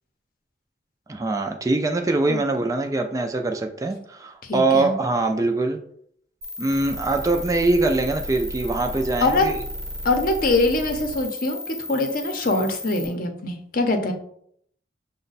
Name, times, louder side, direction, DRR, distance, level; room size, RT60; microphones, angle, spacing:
voice 1, 1.1-5.8 6.6-9.5, right 2 dB, 20° right, 4 dB, 0.4 m, -23 dB
voice 2, 4.4-4.9 9.2-9.5 10.0-14.1, left 2 dB, 50° left, 5 dB, 0.7 m, -23 dB
sound 1, 6.4-13.1, left 1 dB, 70° right, 0.9 m, -34 dB
6.1 x 2.2 x 4.0 m, 0.67 s
head